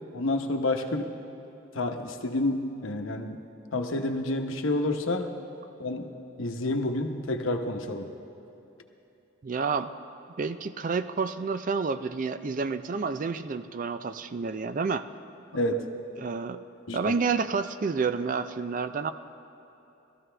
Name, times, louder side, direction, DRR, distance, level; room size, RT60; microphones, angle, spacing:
voice 1, 0.1-1.1 1.7-3.4 3.7-5.3 5.8-6.1 6.4-8.1 15.5-15.8 16.9-17.1, left 2 dB, 90° left, 5 dB, 0.9 m, -29 dB
voice 2, 9.4-9.9 10.4-15.0 16.2-16.6 16.9-19.1, right 5 dB, 40° right, 11 dB, 0.4 m, -29 dB
19.0 x 14.0 x 3.3 m, 2.9 s
head